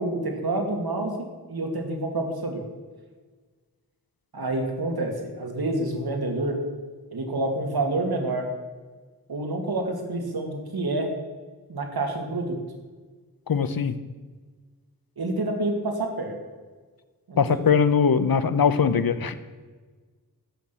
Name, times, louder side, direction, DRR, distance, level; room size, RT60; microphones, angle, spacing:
voice 1, 0.0-2.6 4.3-6.6 7.1-8.5 9.3-11.1 11.7-12.6 15.2-16.4 17.3-17.6, right 2 dB, 75° right, 3 dB, 2.3 m, -28 dB
voice 2, 13.5-14.0 17.4-19.3, left 6 dB, 65° left, 13 dB, 0.9 m, -21 dB
14.0 x 6.0 x 7.6 m, 1.4 s
wide cardioid pair, 60°, 38 cm